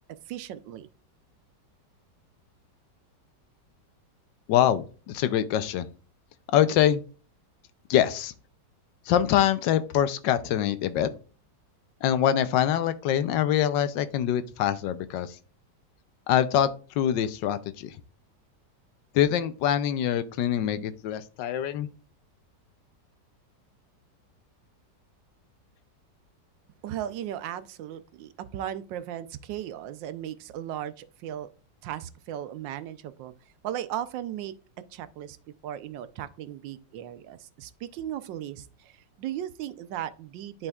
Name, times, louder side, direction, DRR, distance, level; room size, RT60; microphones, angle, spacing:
voice 1, 0.3-0.9 26.8-31.5 31.8-33.3 33.6-34.5 34.9-35.4 35.6-40.7, right 11 dB, 90° right, 1.3 m, -36 dB
voice 2, 4.5-5.9 6.5-7.0 7.9-8.3 9.1-11.1 12.0-15.4 16.3-18.0 19.1-21.9, left 10 dB, 85° left, 1.3 m, -24 dB
11.0 x 4.3 x 2.3 m
omnidirectional pair, 1.9 m